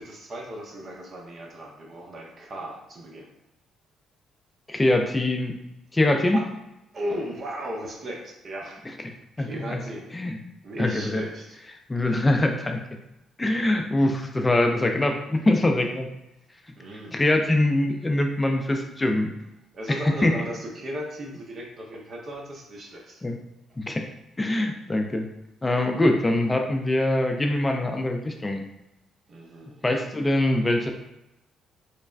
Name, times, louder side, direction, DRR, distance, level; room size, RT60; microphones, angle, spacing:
voice 1, 0.0-3.3 6.3-6.5 6.9-8.8 9.4-10.1 10.6-11.6 16.8-17.2 19.7-23.2 29.3-29.9, equal, 50° right, 0 dB, 0.7 m, -36 dB
voice 2, 4.7-5.5 5.9-6.4 9.0-9.8 10.1-10.4 10.8-11.2 11.9-12.8 13.4-16.1 17.1-19.3 19.9-20.4 23.2-23.4 23.8-24.1 24.4-25.3 25.6-28.6 29.8-30.9, left 1 dB, 20° left, 4 dB, 0.4 m, -23 dB
3.2 x 2.1 x 2.4 m, 0.90 s
hypercardioid pair, 55°, 0 cm